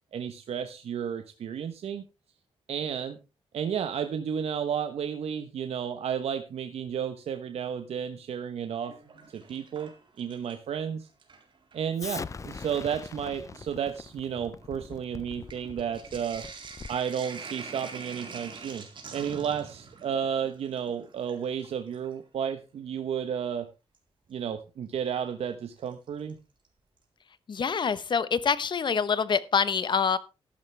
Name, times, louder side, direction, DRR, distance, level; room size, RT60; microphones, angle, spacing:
voice 1, 0.1-2.0 2.7-3.2 3.5-8.9 9.3-11.1 11.7-16.5 16.9-18.8 19.1-23.7 24.3-26.4, right 8 dB, 75° right, 8 dB, 1.1 m, -32 dB
Sink (filling or washing), 8.7-10.7 11.1-11.9 12.7-12.8 13.1-22.2 23.9-24.0 25.9-26.3 26.6-26.7 27.0-27.1, right 4 dB, 50° right, 3.7 m, -45 dB
Explosion, 12.0-17.1, left 5 dB, 30° left, 0.5 m, -42 dB
voice 2, 27.5-30.2, left 6 dB, 45° left, 15 dB, 1.1 m, -26 dB
13.0 x 11.5 x 3.4 m, 0.28 s
wide cardioid pair, 120°, 11 cm